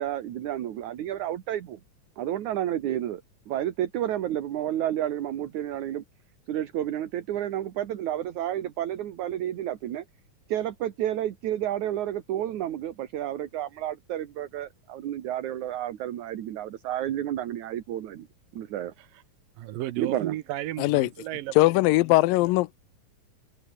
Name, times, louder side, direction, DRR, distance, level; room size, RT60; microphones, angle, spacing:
voice 1, 0.0-1.8 2.2-6.0 6.5-10.0 10.5-18.3 18.5-18.9 20.0-20.3, right 12 dB, 65° right, 2.7 m, -31 dB
voice 2, 19.6-21.7, right 15 dB, 85° right, 2.7 m, -34 dB
voice 3, 20.8-21.1 21.6-22.8, left 20 dB, 85° left, 2.4 m, -20 dB
omnidirectional pair, 3.9 m